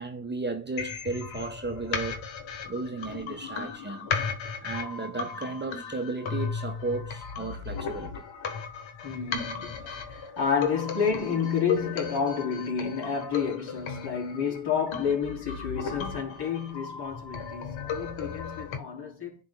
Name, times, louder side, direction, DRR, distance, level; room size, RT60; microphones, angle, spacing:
voice 1, 0.0-2.2 2.7-4.2 4.6-8.2, right 3 dB, 20° right, 1.1 m, -34 dB
sound 1, 0.8-18.8, left 6 dB, 70° left, 1.4 m, -35 dB
voice 2, 9.0-19.4, left 6 dB, 55° left, 3.7 m, -30 dB
11.0 x 4.0 x 2.3 m
supercardioid pair, 45°, 48 cm